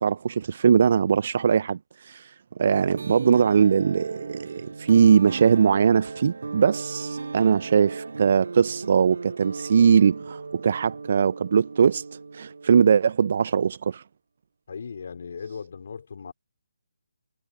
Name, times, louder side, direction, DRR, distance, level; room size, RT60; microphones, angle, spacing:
voice 1, 0.0-12.0 12.3-14.0, right 7 dB, 45° right, 0.8 m, -21 dB
sound 1, 2.6-13.2, right 4 dB, 65° right, 2.1 m, -37 dB
voice 2, 14.7-16.3, left 6 dB, 50° left, 3.2 m, -37 dB
figure-of-eight pair, 145°, 0 cm